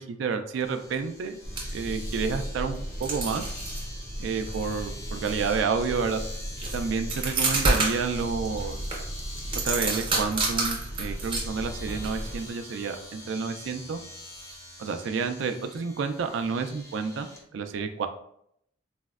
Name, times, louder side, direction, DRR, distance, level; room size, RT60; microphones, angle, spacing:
voice 1, 0.0-1.4 1.7-3.5 4.2-6.2 6.7-8.8 9.6-14.0 14.8-18.1, right 5 dB, 70° right, 8 dB, 0.3 m, -30 dB
Domestic sounds home sounds, 0.6-17.4, left 1 dB, 15° left, 0.4 m, -45 dB
sound 1, 1.4-12.5, right 2 dB, 25° right, 0.6 m, -31 dB
4.1 x 2.1 x 2.3 m, 0.71 s
head